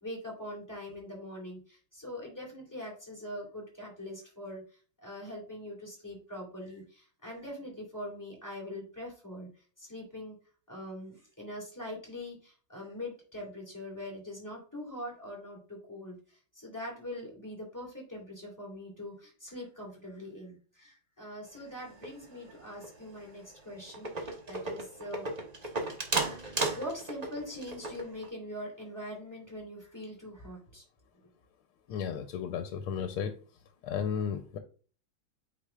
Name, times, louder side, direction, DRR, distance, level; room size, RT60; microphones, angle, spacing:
voice 1, 0.0-4.6 5.0-9.5 9.8-10.3 10.7-25.3 26.4-30.8, left 1 dB, 10° left, -2 dB, 2.7 m, -43 dB
sound 1, 21.8-22.6 22.8-23.1 23.5-23.6 23.9-28.3, right 3 dB, 55° right, 0.4 m, -35 dB
voice 2, 31.9-33.3 33.8-34.6, left 7 dB, 85° left, 7 dB, 1.5 m, -34 dB
8.5 x 4.8 x 2.3 m, 0.38 s
omnidirectional pair, 2.3 m